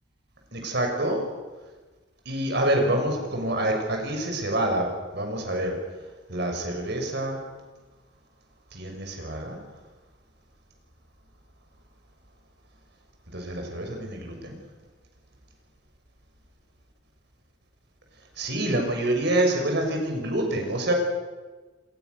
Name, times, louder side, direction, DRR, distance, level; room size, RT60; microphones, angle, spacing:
voice 1, 0.5-1.2 2.3-5.7 6.3-7.4 8.7-9.6 13.3-14.6 18.4-20.9, right 1 dB, 60° right, 2 dB, 6.1 m, -27 dB
27.5 x 20.5 x 6.7 m, 1.3 s
head